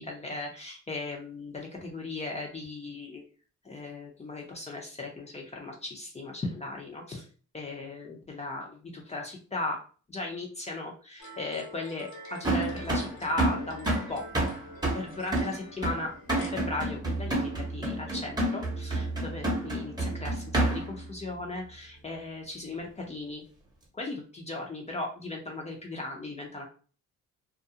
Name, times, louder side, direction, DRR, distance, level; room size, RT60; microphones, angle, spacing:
voice 1, 0.0-3.2 3.6-7.3 7.5-9.8 10.1-14.2 14.9-23.4 23.9-26.7, left 2 dB, 20° left, 0 dB, 0.6 m, -37 dB
sound 1, 11.2-16.5, left 1 dB, 65° left, 1.2 m, -46 dB
sound 2, 12.4-21.0, right 1 dB, 15° right, 0.9 m, -29 dB
2.4 x 2.2 x 2.7 m, 0.39 s
cardioid pair, 90°, 30 cm